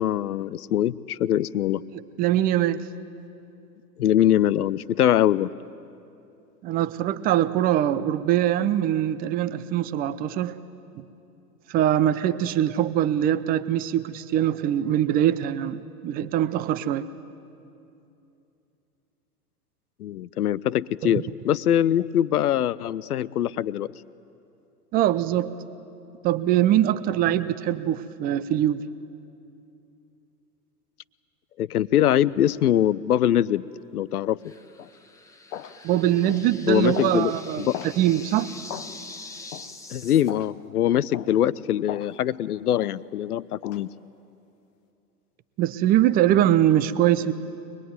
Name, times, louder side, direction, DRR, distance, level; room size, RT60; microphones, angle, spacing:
voice 1, 0.0-1.8 4.0-5.5 20.0-23.9 31.6-33.7 33.9-34.4 36.7-37.8 39.9-43.9, left 11 dB, 70° left, 19 dB, 0.7 m, -23 dB
voice 2, 2.2-2.8 6.6-10.6 11.0-11.1 11.7-17.1 21.0-21.2 24.9-25.5 26.2-28.8 35.8-37.7 38.0-38.5 45.6-47.3, right 12 dB, 20° right, 15 dB, 0.5 m, -22 dB
sound 1, 34.4-40.3, left 3 dB, 5° left, 1.0 m, -44 dB
sound 2, 34.8-34.9 35.5-35.8 36.3-36.5 36.9-37.2 37.7-38.0 38.7-38.9 39.5-39.7 40.3-40.5 41.1-41.4 41.9-42.1 42.7-42.9 43.6-43.8, left 11 dB, 55° left, 1.1 m, -37 dB
23.5 x 21.0 x 9.3 m, 2.7 s
figure-of-eight pair, 100°, 48 cm